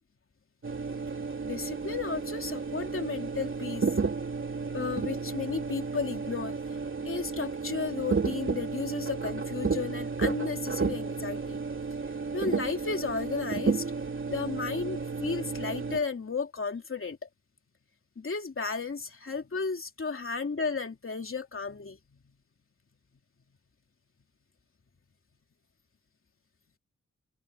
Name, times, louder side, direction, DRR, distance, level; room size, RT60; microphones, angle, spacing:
sound 1, 0.6-16.0, right 4 dB, 40° right, 2.8 m, -32 dB
voice 1, 1.4-3.9 4.7-11.6 12.3-13.9 14.3-17.3 18.2-22.0, left 4 dB, 45° left, 2.8 m, -34 dB
open air
wide cardioid pair, 140°, 30 cm